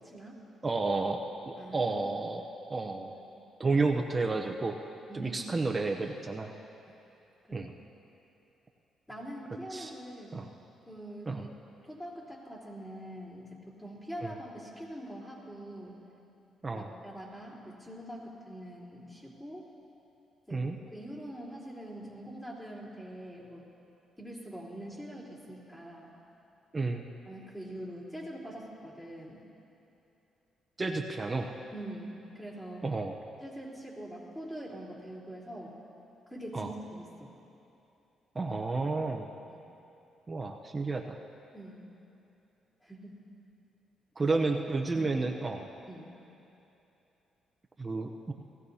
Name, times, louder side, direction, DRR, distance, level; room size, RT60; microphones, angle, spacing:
voice 1, 0.0-0.4 1.6-2.0 3.1-3.4 5.1-5.4 7.5-7.6 9.1-10.3 10.8-11.5 11.8-16.0 16.7-19.6 20.5-23.6 24.2-26.1 27.2-29.4 31.7-32.8 33.4-35.7 36.3-37.3 39.5-39.7 41.5-41.8 42.8-43.2 44.3-44.4 44.9-45.1 45.9-46.1, right 1 dB, 10° left, -6 dB, 3.5 m, -44 dB
voice 2, 0.6-2.4 2.7-3.1 3.6-4.8 5.1-6.5 7.5-7.7 9.7-9.9 10.3-10.5 11.3-11.4 14.2-14.3 16.6-16.9 20.5-20.8 26.7-27.1 30.8-31.5 32.8-33.1 36.5-36.7 38.3-39.3 40.3-41.2 44.2-45.6 47.8-48.3, right 3 dB, 25° right, 3 dB, 0.7 m, -31 dB
19.5 x 15.5 x 2.8 m, 2.9 s
cardioid pair, 90°, 0 cm